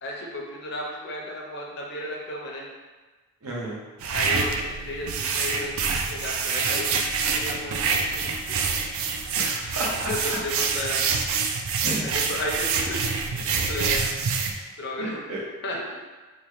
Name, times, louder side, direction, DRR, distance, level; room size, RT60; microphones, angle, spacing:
voice 1, 0.0-2.7 4.1-8.9 10.1-11.0 12.0-14.1 14.8-15.2 15.6-15.9, left 1 dB, 50° left, -1 dB, 0.6 m, -34 dB
voice 2, 3.4-3.8 9.4-10.1 11.8-12.0 15.0-15.4, right 1 dB, 90° right, -5 dB, 0.9 m, -31 dB
sound 1, 4.0-14.5, right 5 dB, 70° right, 0.3 m, -26 dB
4.1 x 2.2 x 3.1 m, 1.3 s
head